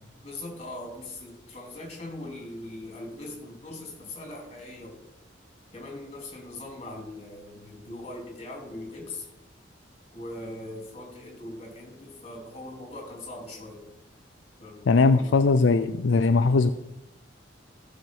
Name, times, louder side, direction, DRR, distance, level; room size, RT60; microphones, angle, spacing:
voice 1, 0.2-5.0 5.7-9.3 10.1-13.8 14.6-15.4, left 2 dB, 35° left, 0 dB, 3.1 m, -40 dB
voice 2, 14.9-16.7, left 4 dB, 80° left, 9 dB, 0.4 m, -20 dB
15.0 x 6.4 x 4.6 m, 0.88 s
head